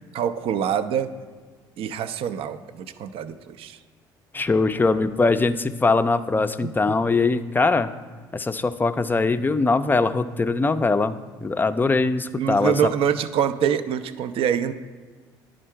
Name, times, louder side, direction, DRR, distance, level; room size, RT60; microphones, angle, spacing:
voice 1, 0.1-1.1 1.8-3.8 6.6-6.7 9.3-9.4 12.4-14.7, right 8 dB, 55° right, 12 dB, 0.4 m, -25 dB
voice 2, 4.3-7.9 8.3-11.2 11.4-12.8, left 3 dB, 15° left, 11 dB, 0.4 m, -21 dB
10.0 x 3.8 x 4.5 m, 1.5 s
hypercardioid pair, 65°, 11 cm